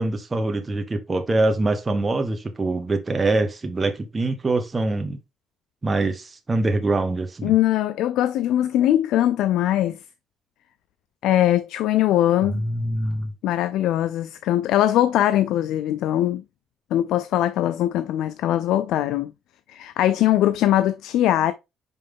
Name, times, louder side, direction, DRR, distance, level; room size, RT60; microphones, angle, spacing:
voice 1, 0.0-5.2 5.8-7.5 12.5-13.3, right 2 dB, 25° right, 1.1 m, -24 dB
voice 2, 7.4-10.0 11.2-12.6 13.4-16.4 16.9-19.3 19.7-21.5, left 12 dB, 90° left, 0.4 m, -21 dB
5.4 x 5.4 x 3.6 m
cardioid pair, 90°, 0 cm